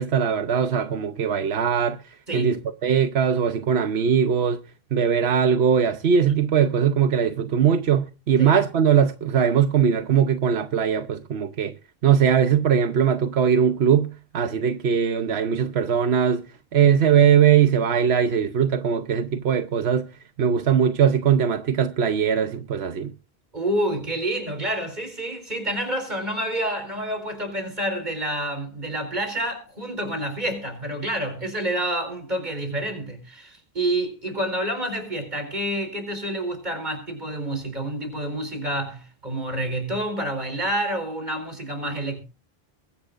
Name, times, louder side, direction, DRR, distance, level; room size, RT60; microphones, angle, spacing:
voice 1, 0.0-2.0 2.3-4.6 4.9-11.7 12.0-14.1 14.3-16.4 16.7-20.1 20.4-23.1, right 8 dB, 85° right, 1.1 m, -20 dB
voice 2, 2.3-2.6 8.4-8.5 23.5-42.2, right 1 dB, 45° right, 4.6 m, -28 dB
22.5 x 10.5 x 2.5 m
omnidirectional pair, 1.0 m